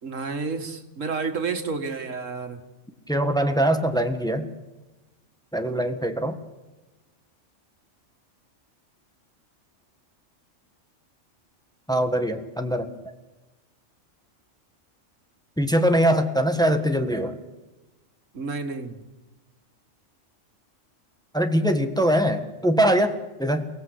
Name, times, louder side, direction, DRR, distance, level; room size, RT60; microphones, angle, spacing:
voice 1, 0.0-2.6 18.3-19.0, right 4 dB, 90° right, 7 dB, 2.2 m, -30 dB
voice 2, 3.1-4.5 5.5-6.4 11.9-12.9 15.6-17.4 21.3-23.7, equal, 5° left, 7 dB, 1.5 m, -22 dB
30.0 x 17.5 x 8.2 m, 1.1 s
omnidirectional pair, 1.3 m